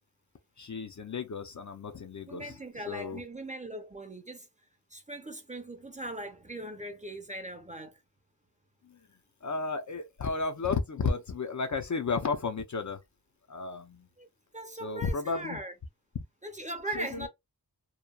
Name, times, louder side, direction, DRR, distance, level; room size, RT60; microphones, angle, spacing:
voice 1, 0.6-2.5 2.9-3.2 8.9-9.0 9.4-13.0 13.5-14.1 14.8-15.6 16.9-17.3, left 4 dB, 45° left, 0.5 m, -33 dB
voice 2, 2.3-4.5 4.9-8.0 14.2-14.3 14.5-15.7 16.4-17.3, right 1 dB, 20° right, 0.5 m, -40 dB
2.9 x 2.2 x 2.2 m
wide cardioid pair, 70°, 41 cm